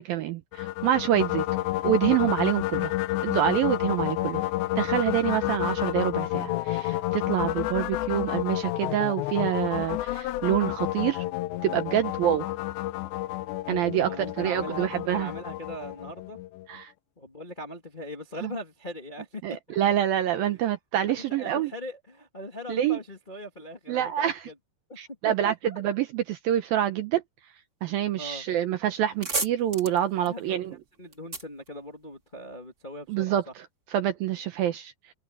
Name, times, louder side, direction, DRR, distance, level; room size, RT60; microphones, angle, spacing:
voice 1, 0.0-1.4 1.8-2.9 3.2-4.4 4.8-11.2 11.6-12.5 13.7-15.3 16.7-16.9 18.4-18.5 19.4-21.7 22.7-23.0 23.9-24.4 25.0-27.2 27.8-30.7 33.1-33.7 33.9-34.9, right 11 dB, 75° right, 2.3 m, -26 dB
sound 1, 0.5-16.8, left 16 dB, 80° left, 2.9 m, -30 dB
voice 2, 13.9-16.4 17.2-19.8 21.1-24.5 24.9-25.0 25.2-25.8 28.1-28.5 30.3-30.6 31.0-33.5, equal, 35° left, 0.7 m, -40 dB
sound 2, 28.5-28.6 28.9-32.5, right 3 dB, 20° right, 3.9 m, -35 dB
omnidirectional pair, 5.1 m